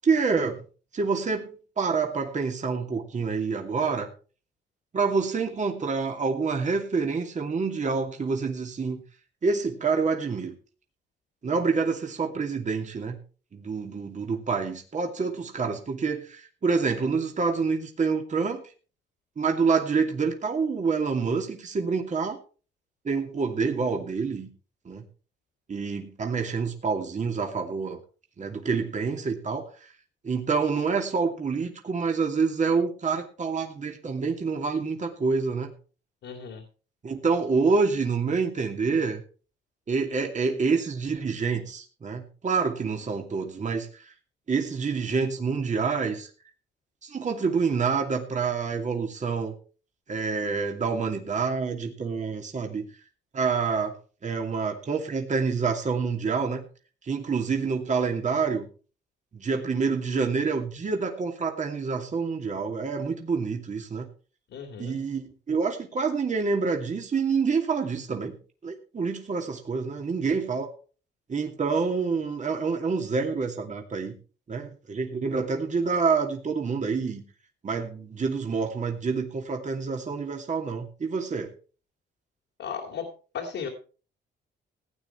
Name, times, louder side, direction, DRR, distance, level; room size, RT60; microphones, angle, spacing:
voice 1, 0.0-0.6 0.9-4.1 4.9-9.0 9.4-10.5 11.4-13.2 13.5-18.6 19.4-22.4 23.0-24.5 24.8-25.0 25.7-28.0 28.4-29.9 30.2-35.7 37.0-39.2 39.9-44.1 44.5-46.3 47.0-49.5 50.1-52.8 53.3-53.9 54.2-56.7 57.0-58.7 59.3-64.1 64.8-68.4 68.6-70.7 71.3-74.1 74.5-77.2 77.6-81.5, right 5 dB, 40° right, 3 dB, 2.7 m, -27 dB
voice 2, 36.2-36.6 64.5-65.0 82.6-83.1 83.3-83.7, left 7 dB, 70° left, 1 dB, 2.9 m, -35 dB
17.0 x 9.3 x 4.6 m, 0.38 s
cardioid pair, 90°, 20 cm